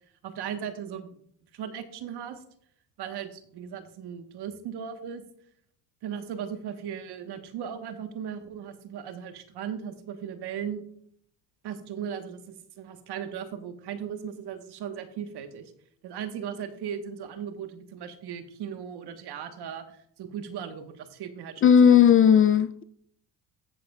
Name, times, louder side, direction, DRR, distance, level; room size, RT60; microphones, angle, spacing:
voice 1, 0.2-1.1 1.5-2.4 3.0-5.2 6.0-10.8 11.6-15.6 16.0-22.0, right 8 dB, 60° right, 1.3 m, -37 dB
voice 2, 21.6-22.8, left 8 dB, 30° left, 0.4 m, -16 dB
13.5 x 7.7 x 2.3 m
supercardioid pair, 85°, 44 cm